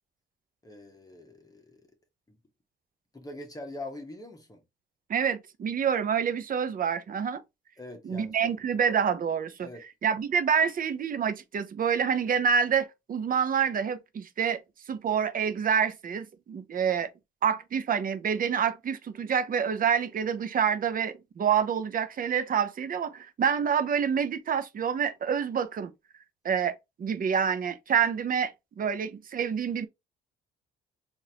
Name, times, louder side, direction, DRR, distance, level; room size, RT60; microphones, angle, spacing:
voice 1, 0.6-1.9 2.3-2.4 3.1-4.6 7.8-8.5 9.6-9.8, left 2 dB, 20° left, 1.0 m, -43 dB
voice 2, 5.1-7.4 8.1-9.7 10.0-14.6 14.9-17.1 17.4-25.9 26.4-29.9, right 7 dB, 45° right, 0.6 m, -27 dB
3.9 x 2.6 x 2.7 m
cardioid pair, 90°, 20 cm